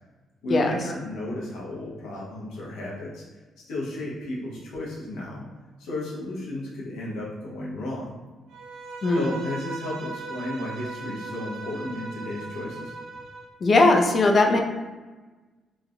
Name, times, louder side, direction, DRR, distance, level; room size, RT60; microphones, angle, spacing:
voice 1, 0.4-3.2 3.6-5.4 5.8-8.1 9.1-12.9, left 1 dB, 85° left, -5 dB, 0.8 m, -33 dB
Bowed string instrument, 8.5-13.5, right 3 dB, 80° right, 0.5 m, -38 dB
voice 2, 13.6-14.6, left 2 dB, 45° left, 2 dB, 0.4 m, -19 dB
3.1 x 2.1 x 2.4 m, 1.2 s
cardioid pair, 90°, 0 cm